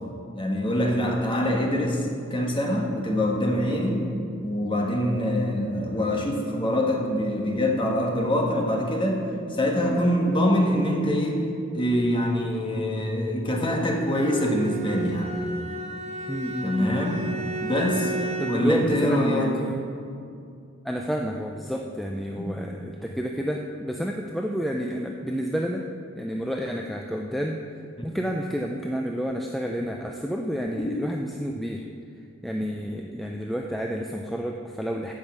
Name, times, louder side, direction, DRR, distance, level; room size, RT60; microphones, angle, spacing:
voice 1, 0.3-4.0 4.4-9.2 9.5-11.4 11.7-15.3 16.6-17.2 17.6-18.1 18.5-19.5 22.3-22.5 28.0-28.1 30.8-30.9, left 1 dB, 25° left, 0 dB, 1.4 m, -24 dB
Bowed string instrument, 14.0-18.8, right 2 dB, 30° right, 0.9 m, -33 dB
voice 2, 16.3-16.9 18.4-19.8 20.8-25.8 26.1-27.6 28.0-31.8 32.4-35.1, equal, ahead, 1 dB, 0.4 m, -30 dB
12.0 x 5.6 x 8.1 m, 2.5 s
head